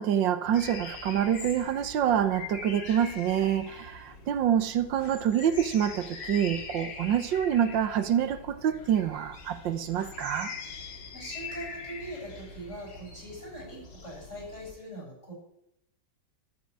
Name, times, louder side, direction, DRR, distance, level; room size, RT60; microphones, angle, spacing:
voice 1, 0.0-10.5, right 9 dB, 85° right, 12 dB, 1.6 m, -26 dB
sound 1, 0.5-14.7, left 4 dB, 90° left, 2.7 m, -43 dB
voice 2, 11.1-15.3, right 1 dB, 40° left, -2 dB, 8.6 m, -42 dB
13.0 x 8.9 x 8.8 m, 0.81 s
omnidirectional pair, 1.9 m